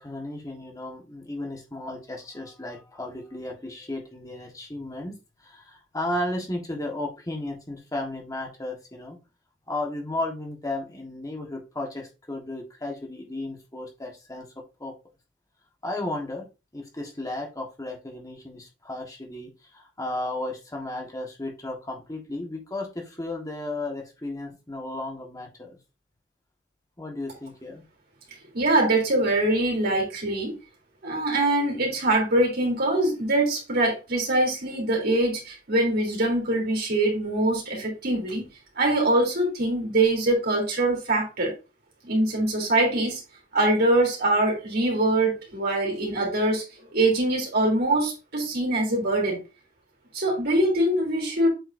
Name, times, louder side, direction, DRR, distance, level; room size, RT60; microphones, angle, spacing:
voice 1, 0.0-9.2 9.7-14.5 14.8-14.9 15.8-16.5 16.7-25.8 27.0-27.8, left 1 dB, 20° left, 1.5 m, -34 dB
voice 2, 28.5-30.5 31.0-38.5 38.8-41.5 42.1-43.2 43.5-46.6 46.9-49.4 50.1-51.5, right 2 dB, 55° right, 3.5 m, -23 dB
7.9 x 5.8 x 2.7 m
head